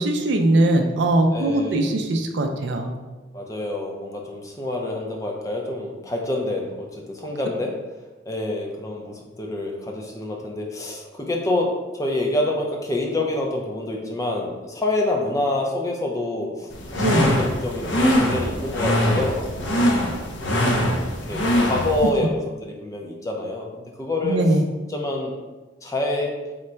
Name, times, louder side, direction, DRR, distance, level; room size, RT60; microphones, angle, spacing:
voice 1, 0.0-2.9 17.0-17.3 24.2-24.6, right 1 dB, 65° right, 4 dB, 0.4 m, -20 dB
voice 2, 1.3-2.0 3.3-7.8 8.3-19.9 20.6-20.9 21.3-24.4 24.9-25.4 25.8-26.3, left 2 dB, 15° left, 0 dB, 0.4 m, -27 dB
sound 1, 16.7-22.1, equal, 75° left, 0.6 m, -22 dB
3.8 x 2.2 x 4.3 m, 1.2 s
head